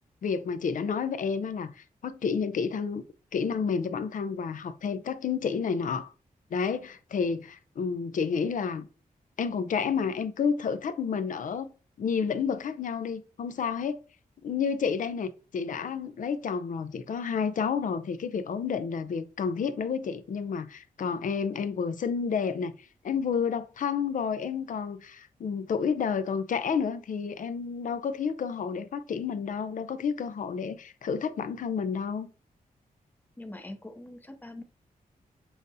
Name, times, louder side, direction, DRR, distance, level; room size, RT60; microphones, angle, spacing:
voice 1, 0.2-3.0 3.3-6.1 6.5-8.9 9.4-11.7 12.0-14.0 14.4-22.7 23.0-32.3, left 6 dB, 65° left, 0.5 m, -30 dB
voice 2, 33.4-34.6, left 1 dB, 10° left, 0.6 m, -43 dB
7.1 x 2.5 x 2.7 m
wide cardioid pair, 115°, 15 cm